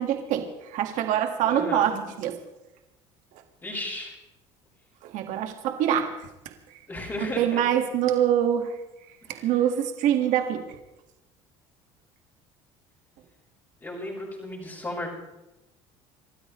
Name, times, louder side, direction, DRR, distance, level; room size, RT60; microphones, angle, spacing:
voice 1, 0.0-2.4 5.0-6.1 7.2-8.8 9.3-10.6, right 10 dB, 65° right, 5 dB, 1.8 m, -25 dB
voice 2, 1.5-1.9 3.6-4.1 6.9-7.7 9.2-9.4 13.8-15.1, left 1 dB, 20° left, -8 dB, 5.4 m, -34 dB
28.5 x 12.5 x 3.2 m, 0.96 s
supercardioid pair, 95°, 14 cm